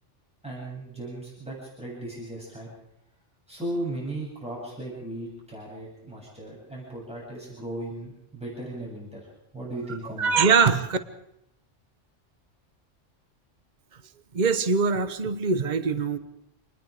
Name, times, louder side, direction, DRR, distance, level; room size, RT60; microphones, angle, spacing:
voice 1, 0.4-2.7 3.5-9.3 9.5-10.5, right 1 dB, 5° right, -4 dB, 7.9 m, -36 dB
voice 2, 10.2-11.0 14.3-16.2, right 5 dB, 40° right, 11 dB, 1.2 m, -22 dB
27.0 x 20.5 x 5.0 m, 0.80 s
omnidirectional pair, 1.3 m